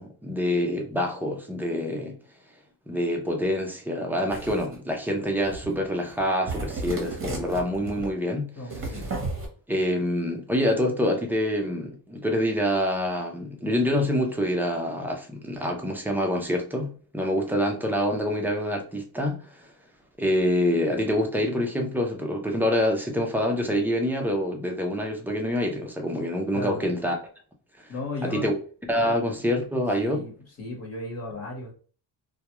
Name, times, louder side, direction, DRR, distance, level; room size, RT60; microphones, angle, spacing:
voice 1, 0.0-2.1 2.9-8.5 9.7-19.7 20.2-27.2 28.3-28.6 28.9-30.2, equal, 5° right, 0.4 m, -26 dB
sound 1, 4.3-4.8 5.4-5.8 6.1-6.2 6.5-8.1 8.7-9.5, right 3 dB, 30° right, 0.8 m, -33 dB
voice 2, 8.6-9.1 26.5-26.9 27.9-28.5 29.0-29.1 30.0-30.3 30.6-31.7, left 2 dB, 35° left, 1.0 m, -35 dB
2.3 x 2.2 x 2.9 m
cardioid pair, 130°, 45 cm